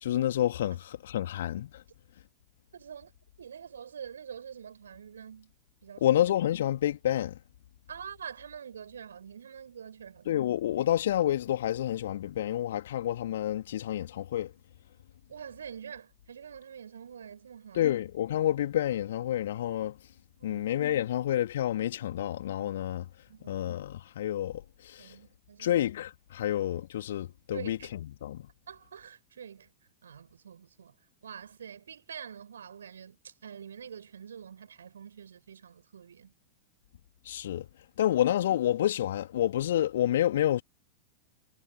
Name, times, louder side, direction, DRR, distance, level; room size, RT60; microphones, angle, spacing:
voice 1, 0.0-1.7 6.0-7.4 10.3-14.5 17.7-19.9 20.4-23.1 23.5-25.1 25.6-28.5 37.2-37.7 38.0-40.6, left 12 dB, 60° left, 3.2 m, -29 dB
voice 2, 2.7-3.1 3.4-5.5 5.8-6.2 7.9-10.5 15.3-17.9 20.4-20.6 23.3-23.7 25.0-25.8 26.4-26.5 27.5-27.9 28.7-29.7 30.0-30.9 31.2-36.3, right 8 dB, 70° right, 7.8 m, -46 dB
figure-of-eight pair, 90°, 0 cm